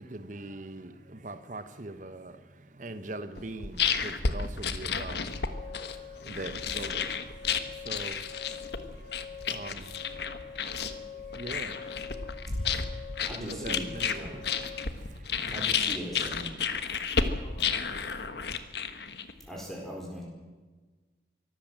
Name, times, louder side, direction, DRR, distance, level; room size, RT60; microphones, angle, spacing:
voice 1, 0.0-15.6, right 2 dB, 45° right, 11 dB, 1.0 m, -43 dB
sound 1, 3.4-19.5, left 6 dB, 65° left, 1.4 m, -32 dB
sound 2, 5.3-14.9, left 7 dB, 80° left, 2.4 m, -46 dB
voice 2, 6.1-6.5 15.8-18.6, equal, 25° left, 2 dB, 2.9 m, -53 dB
voice 3, 13.2-14.4 15.4-16.5 19.5-20.2, equal, ahead, -2 dB, 4.4 m, -40 dB
24.0 x 14.5 x 7.6 m, 1.3 s
head